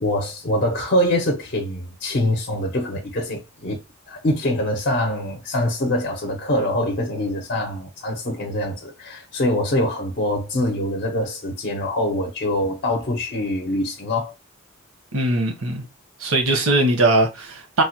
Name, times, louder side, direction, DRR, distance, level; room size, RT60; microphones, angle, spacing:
voice 1, 0.0-3.8 4.1-14.3, left 1 dB, 45° left, 0.6 m, -24 dB
voice 2, 15.1-15.9 16.2-17.8, right 2 dB, 80° right, 0.9 m, -20 dB
3.2 x 2.1 x 2.8 m
head